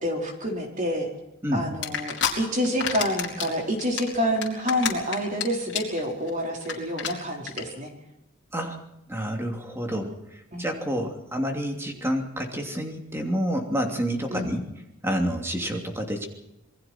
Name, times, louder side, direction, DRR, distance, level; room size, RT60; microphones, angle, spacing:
voice 1, 0.0-1.1 1.5-7.9 10.5-10.7 14.3-14.5, equal, 35° right, 1 dB, 4.4 m, -28 dB
sound 1, 1.8-2.3 2.6-3.5 3.8-5.4 5.7-6.0 6.3-6.4 6.6-6.7 7.0-7.1 7.5-7.6, left 8 dB, 55° left, 4.4 m, -27 dB
voice 2, 9.1-14.6 15.0-16.3, equal, 10° right, 2 dB, 2.9 m, -28 dB
27.5 x 21.5 x 4.5 m, 0.88 s
head